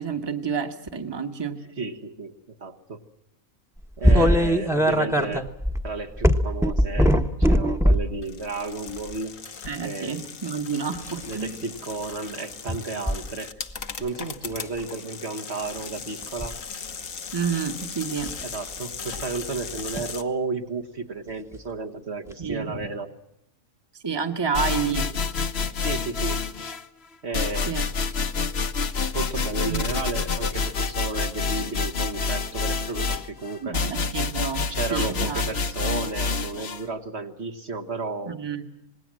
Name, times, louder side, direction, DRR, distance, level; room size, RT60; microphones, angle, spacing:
voice 1, 0.0-1.6 4.1-4.3 9.6-11.5 17.3-18.3 22.4-22.9 24.0-25.1 27.6-27.8 29.6-29.9 33.6-35.4 38.3-38.6, right 6 dB, 20° right, 7 dB, 1.4 m, -29 dB
voice 2, 1.8-3.0 4.0-5.5 5.8-9.4 9.8-10.2 11.3-13.5 14.0-16.6 18.4-23.1 25.8-26.4 27.2-27.7 29.1-33.8 34.7-38.4, right 3 dB, 55° right, 3 dB, 1.8 m, -33 dB
sound 1, 4.0-8.2 8.9-9.1 10.9-11.3 13.1-13.2 13.7-14.1 14.5-14.8 16.2-16.5 18.2-18.4 19.9-20.0 21.5-21.6 22.3-22.4, equal, ahead, 1.2 m, -21 dB
sound 2, 8.2-20.2, left 6 dB, 75° left, 1.7 m, -38 dB
sound 3, 24.5-26.8 27.3-36.8, left 4 dB, 50° left, 1.3 m, -27 dB
27.0 x 20.0 x 7.6 m, 0.80 s
omnidirectional pair, 1.4 m